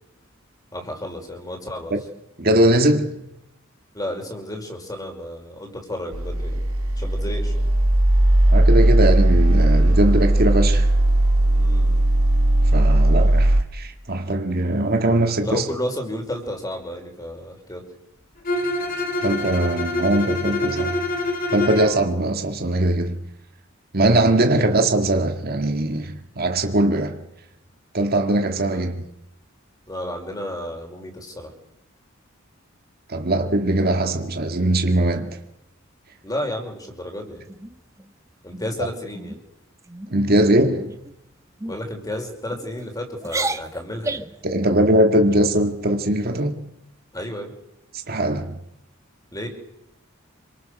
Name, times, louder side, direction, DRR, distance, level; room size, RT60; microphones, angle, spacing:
voice 1, 0.7-1.9 3.9-6.6 7.0-7.7 11.6-12.0 15.4-17.8 28.7-28.8 29.9-31.5 36.2-37.5 38.4-39.4 41.7-44.2 47.1-47.5 49.3-49.5, left 1 dB, 20° left, 5.2 m, -32 dB
voice 2, 2.4-3.2 8.5-10.9 12.7-15.7 19.2-21.0 21.5-23.2 23.9-27.2 27.9-29.0 33.1-35.4 40.1-40.9 44.4-46.7 47.9-48.6, right 1 dB, 45° right, 2.0 m, -21 dB
sound 1, 6.1-13.6, right 1 dB, 85° right, 2.0 m, -17 dB
Bowed string instrument, 18.4-22.0, left 2 dB, 45° left, 4.0 m, -25 dB
sound 2, 37.5-38.1 38.5-38.8 39.1-39.4 39.8-40.1 40.8-41.1 41.6-41.8 42.5-42.9 43.2-44.4, right 2 dB, 15° right, 1.0 m, -31 dB
27.5 x 24.5 x 6.6 m
head